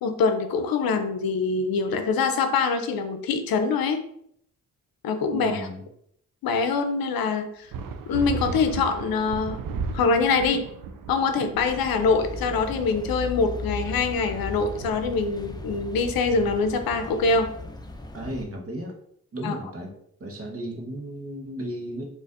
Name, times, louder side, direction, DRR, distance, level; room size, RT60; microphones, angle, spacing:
voice 1, 0.0-4.0 5.0-5.7 6.4-7.7 8.1-9.6 9.9-10.6 11.1-17.5 19.4-19.6, left 4 dB, 90° left, 8 dB, 0.5 m, -24 dB
voice 2, 5.3-5.8 18.1-18.9 19.3-19.9 20.2-22.0, right 1 dB, 40° right, 0 dB, 1.1 m, -34 dB
sound 1, 7.7-17.7, right 4 dB, 75° right, 0.5 m, -36 dB
sound 2, 11.6-18.5, left 2 dB, 10° left, 0.5 m, -37 dB
4.1 x 2.5 x 2.5 m, 0.69 s
cardioid pair, 45°, 34 cm